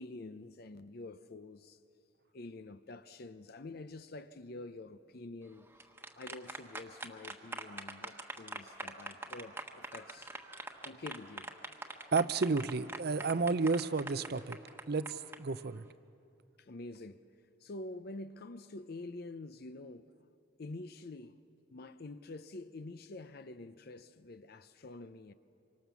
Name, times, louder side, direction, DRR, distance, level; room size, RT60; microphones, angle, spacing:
voice 1, 0.0-1.8 2.3-5.7 6.2-10.3 10.8-11.5 16.6-17.2 17.6-20.1 20.6-21.4 21.7-25.3, left 2 dB, 55° left, 0.6 m, -47 dB
sound 1, 5.6-15.4, right 2 dB, 10° right, 1.2 m, -44 dB
voice 2, 12.1-14.6 14.9-15.9, right 4 dB, 55° right, 0.6 m, -31 dB
26.0 x 24.5 x 7.0 m
head